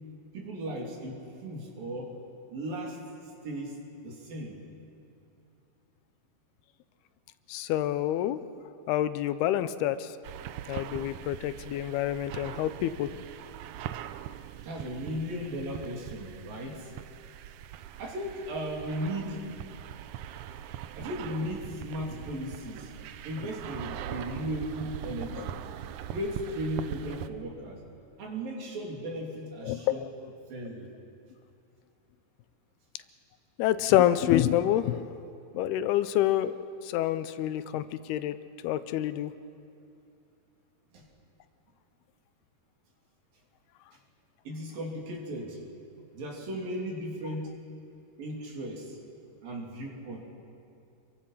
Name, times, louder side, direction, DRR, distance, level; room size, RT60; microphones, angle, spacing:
voice 1, 0.3-2.2 2.5-3.0 3.4-3.8 4.0-4.6 14.6-16.9 18.0-19.4 21.0-22.9 23.2-25.6 26.1-27.8 28.2-30.1 30.5-30.9 40.9-41.0 44.4-45.6 46.1-47.5 48.2-49.0 49.4-50.2, equal, 65° right, -1 dB, 5.0 m, -36 dB
voice 2, 7.5-8.4 8.9-10.1 10.7-13.1 25.4-25.5 29.6-30.1 33.6-35.0 35.5-36.6 36.8-38.4 38.6-39.3, left 12 dB, 85° left, 13 dB, 2.7 m, -27 dB
sound 1, 10.2-27.3, right 11 dB, 90° right, 1.7 m, -42 dB
29.5 x 23.0 x 5.8 m, 2.6 s
omnidirectional pair, 4.5 m